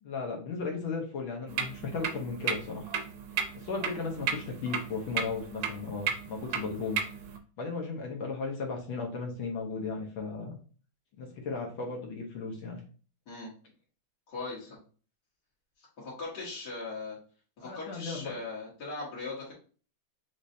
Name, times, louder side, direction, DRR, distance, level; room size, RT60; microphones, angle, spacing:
voice 1, 0.0-2.9 3.6-7.0 7.6-10.6 11.2-12.8 17.6-18.3, left 4 dB, 75° left, 0 dB, 1.7 m, -36 dB
sound 1, 1.5-7.4, right 7 dB, 65° right, 1.0 m, -35 dB
voice 2, 14.3-14.8 16.0-17.2 17.6-19.5, left 3 dB, 55° left, -6 dB, 2.2 m, -39 dB
5.9 x 3.2 x 2.6 m, 0.39 s
omnidirectional pair, 2.3 m